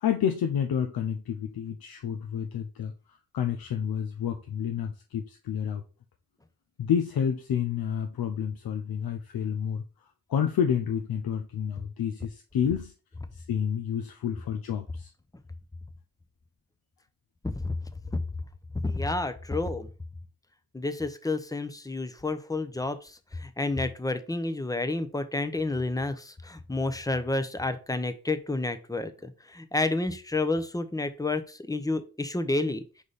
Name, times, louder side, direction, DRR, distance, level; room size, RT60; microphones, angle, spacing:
voice 1, 0.0-2.9 3.3-5.8 6.8-9.8 10.3-12.9 13.3-15.1, left 8 dB, 90° left, 0.7 m, -29 dB
voice 2, 17.4-17.7 18.8-19.9 20.7-32.8, left 2 dB, 10° left, 0.8 m, -30 dB
5.2 x 4.9 x 4.1 m
cardioid pair, 80°, 35 cm